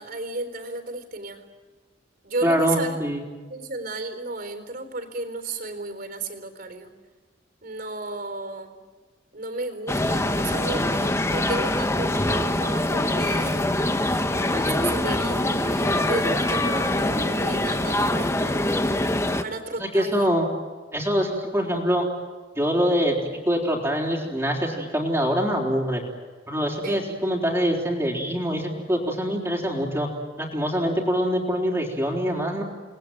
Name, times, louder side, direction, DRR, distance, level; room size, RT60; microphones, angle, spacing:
voice 1, 0.0-1.5 2.2-3.0 3.5-6.9 7.6-8.8 9.3-13.7 14.5-18.7 19.4-20.3 26.8-27.0, right 3 dB, 55° right, 8 dB, 4.0 m, -33 dB
voice 2, 2.4-3.2 19.8-20.5 20.9-22.1 22.6-26.0 26.5-30.1 30.4-32.6, equal, 15° right, -1 dB, 3.9 m, -24 dB
sound 1, 9.9-19.4, left 1 dB, 15° left, 1.2 m, -24 dB
29.5 x 20.5 x 9.3 m, 1.3 s
head